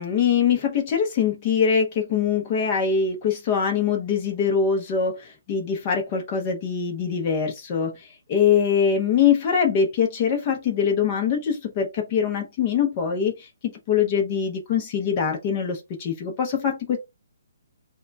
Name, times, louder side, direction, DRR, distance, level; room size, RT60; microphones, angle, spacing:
voice 1, 0.0-5.2 5.5-7.9 8.3-13.3 13.9-17.0, left 7 dB, 20° left, 0.7 m, -23 dB
3.6 x 2.2 x 3.9 m
hypercardioid pair, 180°, 0 cm